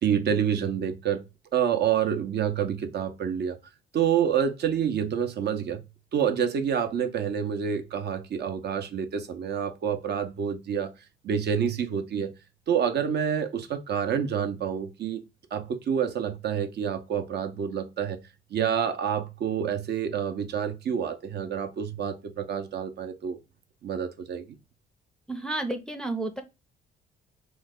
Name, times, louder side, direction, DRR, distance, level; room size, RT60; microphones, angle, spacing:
voice 1, 0.0-1.2 1.5-3.6 3.9-5.8 6.1-10.9 11.2-12.3 12.7-15.2 15.5-18.2 18.5-23.4 23.8-24.5, right 8 dB, 55° right, 0.5 m, -28 dB
voice 2, 25.3-26.4, right 2 dB, 5° left, 0.5 m, -31 dB
3.1 x 2.1 x 3.5 m
cardioid pair, 90°, 20 cm